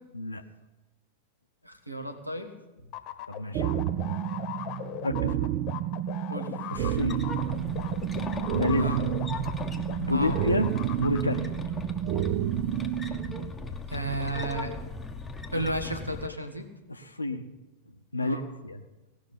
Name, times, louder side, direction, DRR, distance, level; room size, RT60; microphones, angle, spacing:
voice 1, 1.6-2.5 6.3-6.6 8.8-9.1 10.1-10.4 13.9-14.8 15.5-16.7 18.2-18.4, right 1 dB, 90° right, 7 dB, 1.4 m, -33 dB
sound 1, 2.9-10.0 10.2-11.2, left 12 dB, 40° left, 1.1 m, -39 dB
voice 2, 3.3-3.7 5.0-5.4 6.7-7.3 8.5-8.9 10.0-10.7 11.0-11.5 16.9-17.5 18.1-18.8, left 2 dB, 80° left, 6 dB, 0.7 m, -29 dB
sound 2, 3.5-13.5, right 12 dB, 45° right, 0.5 m, -30 dB
sound 3, 6.8-16.3, left 3 dB, 10° left, 1.0 m, -38 dB
17.5 x 6.1 x 9.7 m, 1.0 s
figure-of-eight pair, 90°, 0 cm